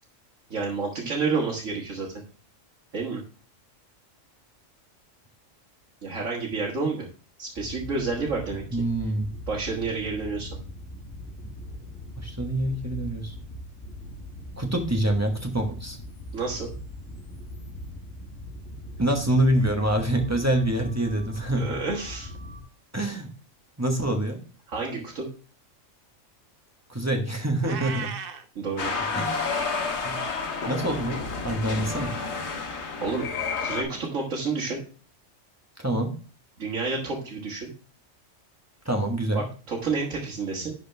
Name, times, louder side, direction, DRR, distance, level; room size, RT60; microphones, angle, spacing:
voice 1, 0.5-2.1 2.9-3.2 6.0-7.1 7.4-8.6 9.5-10.5 16.3-16.7 21.5-22.3 24.7-25.3 28.6-28.9 33.0-33.3 33.6-34.8 36.6-37.7 39.3-40.7, right 4 dB, 75° right, -2 dB, 1.8 m, -29 dB
sound 1, 7.6-22.6, left 1 dB, 15° left, 3.8 m, -40 dB
voice 2, 8.7-9.3 12.2-13.3 14.6-16.0 19.0-21.8 22.9-23.3 23.8-24.4 26.9-28.1 29.1-29.5 30.0-30.2 30.7-32.1 35.8-36.1 38.8-39.4, right 1 dB, 15° right, 3 dB, 1.1 m, -26 dB
Meow, 27.6-28.4, right 6 dB, 50° right, 0.8 m, -35 dB
sound 2, 28.8-33.8, left 4 dB, 60° left, 1.4 m, -30 dB
11.0 x 4.4 x 3.3 m, 0.39 s
omnidirectional pair, 1.3 m